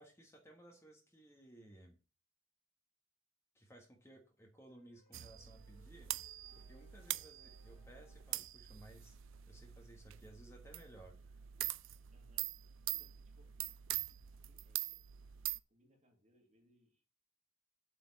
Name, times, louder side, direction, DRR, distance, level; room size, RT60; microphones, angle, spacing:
voice 1, 0.0-2.0 3.5-6.1 6.5-9.2 9.5-11.4, right 1 dB, 10° left, 2 dB, 1.4 m, -59 dB
sound 1, 4.7-8.7, equal, 45° left, 2.5 m, -71 dB
sound 2, 5.1-15.6, right 15 dB, 55° right, 0.4 m, -44 dB
voice 2, 12.1-12.6 12.9-13.6 14.3-15.0 15.7-17.0, equal, 30° right, 3 dB, 2.0 m, -71 dB
8.2 x 4.4 x 7.0 m, 0.35 s
head